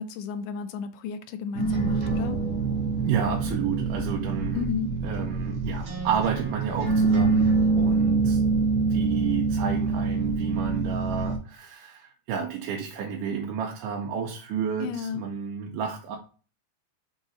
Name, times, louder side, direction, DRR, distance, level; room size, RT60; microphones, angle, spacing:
voice 1, 0.0-2.4 4.5-4.9 14.8-15.2, left 7 dB, 80° left, 2.1 m, -33 dB
sound 1, 1.5-11.4, right 4 dB, 40° right, 1.3 m, -25 dB
voice 2, 3.0-4.6 5.0-8.4 8.7-16.2, right 7 dB, 80° right, 2.3 m, -31 dB
5.9 x 3.9 x 4.0 m
omnidirectional pair, 3.7 m